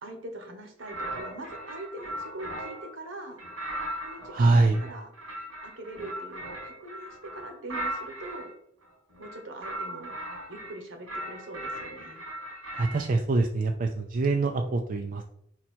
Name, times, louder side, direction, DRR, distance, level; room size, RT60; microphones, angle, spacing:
voice 1, 0.0-3.4 4.0-5.1 5.6-8.5 9.2-10.2 10.5-12.2, right 1 dB, 70° right, 5 dB, 1.2 m, -42 dB
sound 1, 0.8-2.9 3.4-8.5 9.1-10.7 11.1-13.0, right 1 dB, 90° right, 2.3 m, -38 dB
voice 2, 4.3-4.8 12.7-15.2, right 3 dB, 45° right, 4 dB, 0.4 m, -24 dB
5.3 x 4.3 x 4.4 m, 0.73 s
head